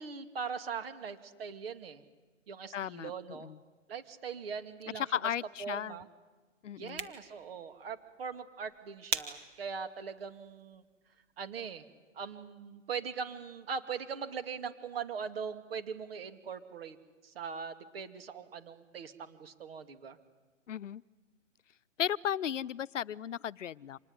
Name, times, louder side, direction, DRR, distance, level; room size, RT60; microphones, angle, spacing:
voice 1, 0.0-2.0 2.5-3.5 3.9-5.0 5.6-6.1 6.8-10.8 11.4-11.8 12.1-17.0 17.2-20.2, right 6 dB, 50° right, 10 dB, 2.5 m, -41 dB
voice 2, 2.7-3.6 5.0-6.0 6.6-7.1 20.7-21.0 22.0-24.0, left 9 dB, 75° left, 19 dB, 0.8 m, -35 dB
sound 1, 6.7-11.8, right 6 dB, 20° right, 1.4 m, -44 dB
26.5 x 19.5 x 9.7 m, 1.3 s
hypercardioid pair, 160°, 37 cm